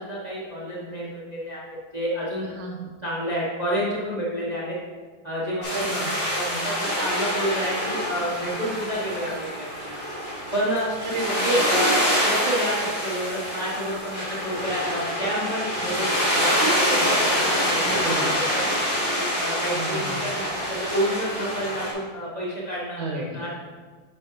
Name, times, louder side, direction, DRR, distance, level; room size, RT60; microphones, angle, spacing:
voice 1, 0.0-2.4 3.0-4.8 5.2-5.6 6.3-10.0 10.5-10.9 11.4-12.8 13.0-17.8 18.2-18.6 19.1-23.5, equal, 30° right, -6 dB, 0.7 m, -29 dB
voice 2, 2.4-2.9 5.7-6.2 11.0-11.5 17.8-18.4 19.7-20.3 23.0-23.4, right 2 dB, 80° right, 0 dB, 1.9 m, -32 dB
sound 1, 5.6-21.9, equal, 30° left, 1.9 m, -26 dB
8.4 x 4.9 x 3.0 m, 1.5 s
omnidirectional pair, 2.2 m